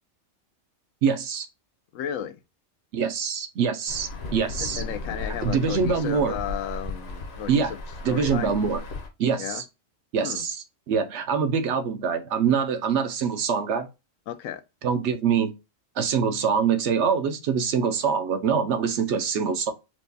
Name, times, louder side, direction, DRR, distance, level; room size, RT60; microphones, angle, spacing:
voice 1, 1.0-1.5 2.9-4.8 5.4-6.4 7.5-7.7 8.0-8.8 9.2-9.6 10.1-13.9 14.8-15.5 16.0-19.7, right 6 dB, 70° right, 0.8 m, -24 dB
voice 2, 1.9-2.4 4.8-7.8 8.1-8.6 9.4-9.6 10.2-10.4 14.3-14.6, left 9 dB, 85° left, 1.0 m, -33 dB
Insect / Thunder / Rain, 3.9-9.1, left 2 dB, 60° left, 1.0 m, -35 dB
4.5 x 2.2 x 2.6 m
omnidirectional pair, 1.3 m